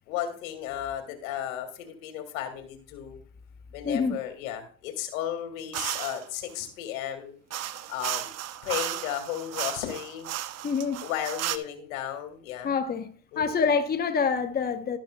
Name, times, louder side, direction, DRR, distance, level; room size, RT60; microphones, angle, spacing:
voice 1, 0.1-3.2 3.7-7.4 7.9-8.3 8.6-10.3 11.0-12.7 13.3-13.6, left 11 dB, 85° left, 2.3 m, -34 dB
voice 2, 3.8-4.2 10.6-11.0 12.6-15.0, left 5 dB, 25° left, 0.9 m, -26 dB
sound 1, 5.7-6.2 7.5-11.6, right 12 dB, 40° right, 0.7 m, -34 dB
12.0 x 11.5 x 2.3 m
supercardioid pair, 95°, 40 cm